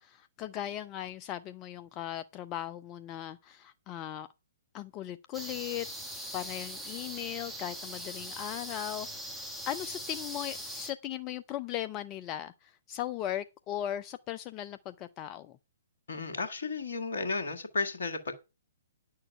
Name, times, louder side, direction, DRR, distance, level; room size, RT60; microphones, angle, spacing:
voice 1, 0.0-4.3 4.7-5.9 6.3-9.4 9.7-15.6, left 12 dB, 25° left, 0.5 m, -38 dB
sound 1, 5.3-10.9, equal, ahead, 1.9 m, -41 dB
voice 2, 16.1-18.4, left 3 dB, 60° left, 1.7 m, -33 dB
10.0 x 6.5 x 5.6 m
figure-of-eight pair, 120°, 0 cm